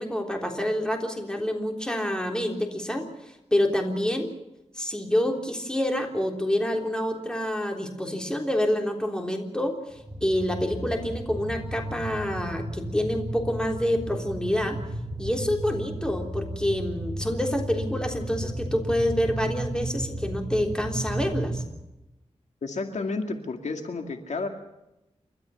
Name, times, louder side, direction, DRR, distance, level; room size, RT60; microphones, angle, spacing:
voice 1, 0.0-3.1 3.5-4.3 4.8-14.8 15.2-21.6, left 1 dB, 5° left, 3 dB, 3.5 m, -27 dB
sound 1, 10.0-21.6, right 1 dB, 15° right, 4.9 m, -34 dB
voice 2, 22.6-24.5, left 3 dB, 80° left, 5 dB, 2.2 m, -31 dB
29.0 x 13.0 x 7.0 m, 0.94 s
wide cardioid pair, 80°, 12 cm